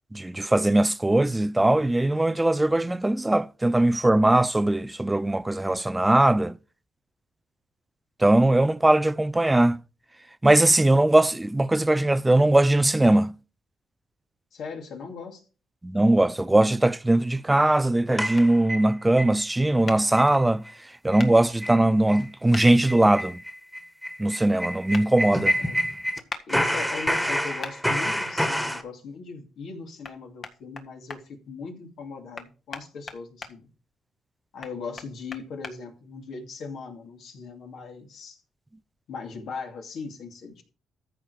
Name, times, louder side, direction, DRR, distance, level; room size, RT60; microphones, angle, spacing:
voice 1, 0.1-6.6 8.2-9.8 10.4-13.3 15.8-20.6 21.0-23.4 24.2-25.5, right 1 dB, 10° right, 0.4 m, -20 dB
voice 2, 14.5-15.4 25.6-25.9 26.5-33.6 34.5-38.4 39.1-40.6, left 4 dB, 70° left, 2.5 m, -39 dB
sound 1, 18.2-19.3 19.7-19.8 20.2-20.4 20.7-20.8 21.1-21.3 21.6-21.8 22.1-22.2 22.6-26.2 26.5-28.8, equal, 5° left, 1.6 m, -28 dB
sound 2, 18.3-18.5 19.9-20.0 21.2-21.3 22.5-22.7 24.9-25.1 26.3-26.4 27.6-27.8 30.0-30.1 30.4-31.2 32.3-33.5 34.6-35.7, left 4 dB, 50° left, 1.6 m, -37 dB
14.0 x 5.1 x 4.9 m
cardioid pair, 90°, 0 cm